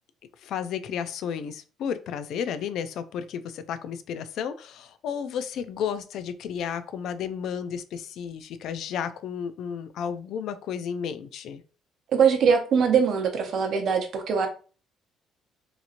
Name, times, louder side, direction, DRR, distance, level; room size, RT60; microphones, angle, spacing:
voice 1, 0.4-11.6, left 7 dB, 65° left, 0.3 m, -32 dB
voice 2, 12.1-14.5, right 6 dB, 55° right, 0.6 m, -22 dB
2.9 x 2.7 x 2.5 m
cardioid pair, 135°, 0 cm